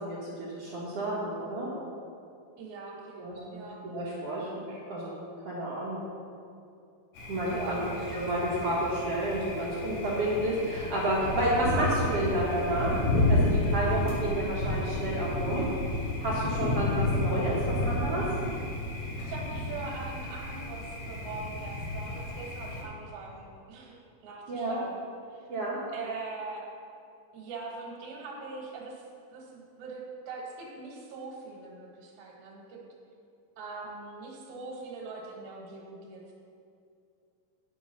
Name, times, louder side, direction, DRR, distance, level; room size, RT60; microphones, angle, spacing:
voice 1, 0.0-1.7 3.2-5.1 5.4-6.1 7.3-7.8 8.1-15.7 16.2-18.2 24.5-24.8 25.5-25.8, right 1 dB, 60° right, -7 dB, 1.8 m, -30 dB
voice 2, 2.6-3.8 7.5-8.1 19.2-24.0 24.2-25.0 25.3-25.5 25.9-26.6 27.3-29.0 29.3-32.8 33.6-36.3, right 4 dB, 75° right, -3 dB, 2.9 m, -42 dB
Thunder, 7.2-22.8, left 1 dB, 65° left, 3.2 m, -31 dB
9.9 x 6.0 x 5.4 m, 2.6 s
omnidirectional pair, 4.1 m